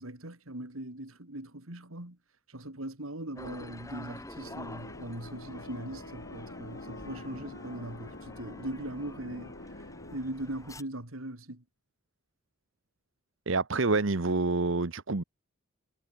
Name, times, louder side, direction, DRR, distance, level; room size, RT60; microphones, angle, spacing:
voice 1, 0.0-2.2 2.5-9.6 10.1-11.6, right 1 dB, 80° right, 4.0 m, -40 dB
sound 1, 3.3-10.8, left 1 dB, 15° left, 7.5 m, -48 dB
sound 2, 4.3-10.2, left 2 dB, 60° left, 1.8 m, -46 dB
voice 2, 13.5-15.2, right 3 dB, 65° right, 1.1 m, -27 dB
head